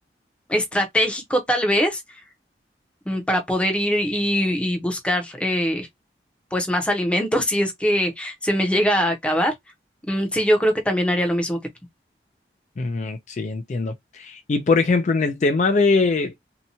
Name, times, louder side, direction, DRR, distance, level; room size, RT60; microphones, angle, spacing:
voice 1, 0.5-2.0 3.1-5.9 6.5-9.5 10.1-11.6, equal, 5° left, 0.6 m, -22 dB
voice 2, 12.8-16.3, left 3 dB, 45° left, 0.3 m, -21 dB
2.8 x 2.1 x 2.7 m
head